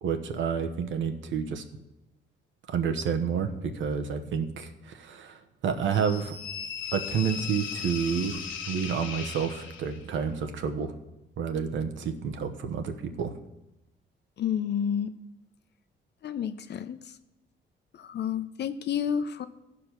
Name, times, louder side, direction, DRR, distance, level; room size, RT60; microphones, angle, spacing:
voice 1, 0.0-1.6 2.7-6.3 6.9-10.9 11.4-13.3, right 6 dB, 75° right, 7 dB, 1.0 m, -30 dB
sound 1, 5.9-10.1, left 7 dB, 85° left, 1.1 m, -37 dB
voice 2, 14.4-15.1 16.2-17.0 17.9-19.5, left 8 dB, 60° left, 11 dB, 0.7 m, -30 dB
15.0 x 5.1 x 5.9 m, 0.95 s
cardioid pair, 90°, 20 cm